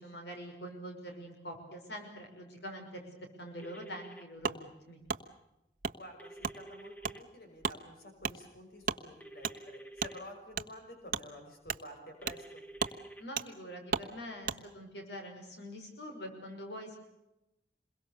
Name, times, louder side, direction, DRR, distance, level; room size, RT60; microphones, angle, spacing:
voice 1, 0.0-3.1 3.4-5.0 13.2-17.0, equal, 80° left, 4 dB, 6.1 m, -45 dB
sound 1, 3.6-4.2 6.2-7.2 9.2-10.2 12.2-13.2, right 1 dB, 10° left, 1.4 m, -50 dB
Wood, 4.4-4.6 5.1-5.2 5.8-6.0 6.4-6.6 7.0-7.2 7.6-7.8 8.2-8.4 8.8-9.0 9.4-9.6 10.0-10.1 10.5-10.7 11.1-11.2 11.7-11.8 12.3-12.4 12.8-13.0 13.4-13.5 13.9-14.1 14.4-14.6, right 5 dB, 50° right, 1.2 m, -34 dB
voice 2, 5.9-12.6, left 1 dB, 60° left, 4 dB, 6.1 m, -50 dB
28.0 x 22.5 x 6.8 m, 0.92 s
head